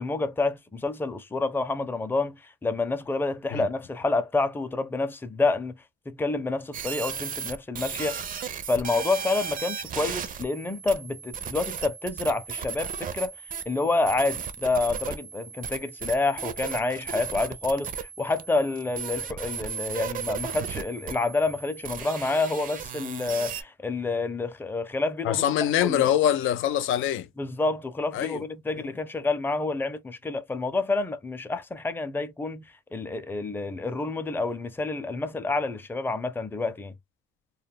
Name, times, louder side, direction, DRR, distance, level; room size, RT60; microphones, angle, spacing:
voice 1, 0.0-5.8 6.1-8.2 8.7-13.3 13.7-25.4 25.8-26.1 27.4-36.9, left 3 dB, 10° left, 0.5 m, -28 dB
sound 1, 6.7-23.6, right 7 dB, 45° right, 0.5 m, -36 dB
voice 2, 25.2-27.3 28.1-28.4 28.8-28.9, left 11 dB, 85° left, 0.4 m, -24 dB
2.3 x 2.0 x 3.3 m
cardioid pair, 90°, 20 cm